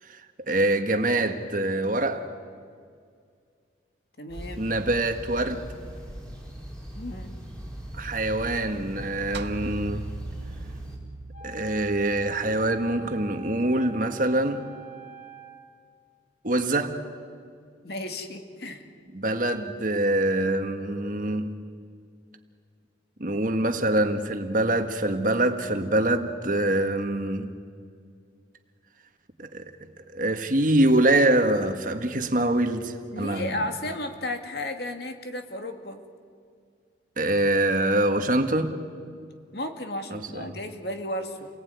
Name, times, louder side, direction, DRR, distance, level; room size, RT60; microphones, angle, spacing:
voice 1, 0.0-2.3 4.6-5.7 7.9-10.1 11.4-14.6 16.4-17.0 19.1-21.5 23.2-27.5 29.4-33.6 37.2-38.8 40.1-40.6, right 1 dB, 45° right, 1.7 m, -25 dB
voice 2, 4.2-4.6 6.9-7.3 17.8-18.8 33.1-36.0 39.5-41.5, left 1 dB, 55° left, 2.4 m, -33 dB
sound 1, 4.3-11.0, equal, 5° left, 4.4 m, -40 dB
sound 2, 9.3-13.8, right 3 dB, 65° right, 0.7 m, -41 dB
Wind instrument woodwind instrument, 11.3-15.7, right 5 dB, 85° left, 7.6 m, -45 dB
30.0 x 20.0 x 9.5 m
head